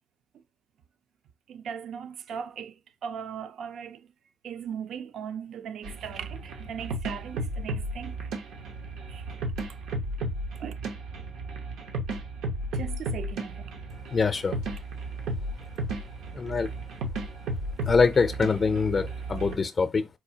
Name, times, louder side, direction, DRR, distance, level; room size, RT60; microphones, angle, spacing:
voice 1, 1.5-4.1 4.4-8.4 9.1-9.2 10.6-10.7 12.7-13.7, right 7 dB, 70° right, 0.4 m, -38 dB
sound 1, 5.8-19.6, right 1 dB, 90° right, 0.8 m, -34 dB
voice 2, 14.1-14.6 16.3-16.7 17.9-20.1, left 5 dB, 40° left, 0.4 m, -24 dB
4.3 x 2.3 x 2.7 m
cardioid pair, 90°, 0 cm